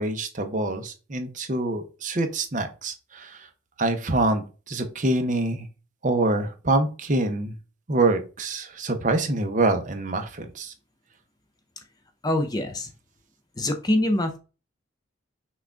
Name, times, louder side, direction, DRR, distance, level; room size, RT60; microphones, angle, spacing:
voice 1, 0.0-3.5 3.8-5.7 6.0-7.6 7.9-10.7, right 2 dB, 40° right, 6 dB, 0.7 m, -25 dB
voice 2, 12.2-12.9 13.6-14.4, left 1 dB, 20° left, 6 dB, 0.5 m, -24 dB
6.0 x 2.3 x 3.5 m, 0.33 s
head